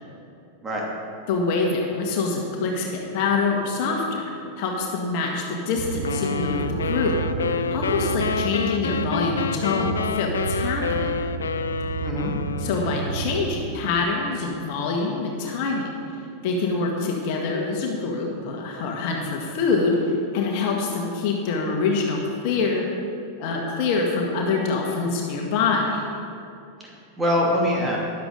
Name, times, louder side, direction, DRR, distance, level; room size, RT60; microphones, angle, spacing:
voice 1, 1.3-11.2 12.6-15.9 16.4-22.8 23.4-26.0, left 4 dB, 45° left, 0 dB, 1.8 m, -25 dB
sound 1, 5.8-13.8, right 7 dB, 50° right, 0.5 m, -31 dB
sound 2, 6.0-13.2, left 6 dB, 70° left, 0.4 m, -28 dB
voice 2, 12.0-12.3 26.8-28.0, equal, 15° right, -3 dB, 2.6 m, -24 dB
13.5 x 10.5 x 3.9 m, 2.5 s
figure-of-eight pair, 90°, 0 cm